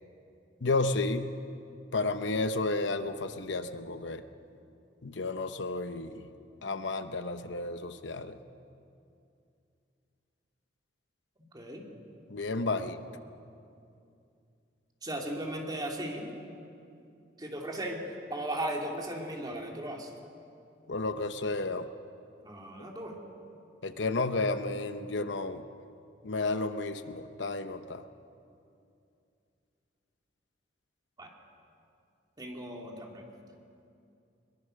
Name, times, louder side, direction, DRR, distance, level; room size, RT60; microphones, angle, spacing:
voice 1, 0.6-1.4 1.9-4.2 5.0-6.3 6.6-8.4 12.3-13.0 20.9-21.9 22.8-22.9 23.8-25.6 26.2-28.0, left 3 dB, 70° left, 9 dB, 0.9 m, -32 dB
voice 2, 11.5-11.8 15.0-16.3 17.4-18.0 18.3-20.1 22.4-23.1 31.2-31.3 32.4-33.2, right 1 dB, 25° right, 0 dB, 2.8 m, -36 dB
22.5 x 22.0 x 6.5 m, 2.6 s
head